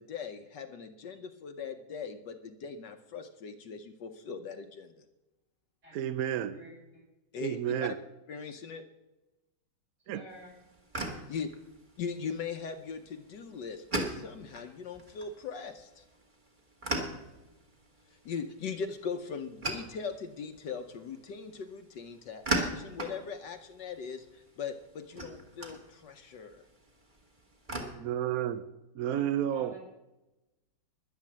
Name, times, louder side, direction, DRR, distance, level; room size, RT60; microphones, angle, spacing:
voice 1, 0.0-5.0 7.3-7.9 8.3-8.8 11.3-11.5 12.0-16.0 18.2-26.6, left 6 dB, 65° left, 7 dB, 1.3 m, -40 dB
voice 2, 5.9-6.6 7.4-7.9 10.1-10.3 27.9-28.6 28.9-29.8, right 10 dB, 75° right, 13 dB, 0.8 m, -31 dB
voice 3, 6.5-7.0 10.1-10.5 10.9-11.1 29.1-29.3 29.5-29.8, equal, 55° right, -2 dB, 7.0 m, -50 dB
sound 1, 10.3-27.8, right 2 dB, 25° right, 1.8 m, -40 dB
11.0 x 10.5 x 7.3 m, 1.0 s
omnidirectional pair, 2.2 m